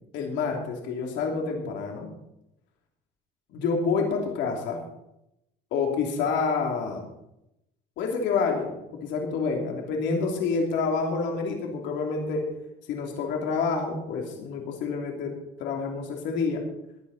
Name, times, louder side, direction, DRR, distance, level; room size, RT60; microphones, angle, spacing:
voice 1, 0.1-2.1 3.5-4.8 5.7-7.0 8.0-12.4 12.9-15.3 15.6-16.6, left 4 dB, 80° left, 1 dB, 2.9 m, -28 dB
20.5 x 11.0 x 4.2 m, 0.85 s
cardioid pair, 135°, 18 cm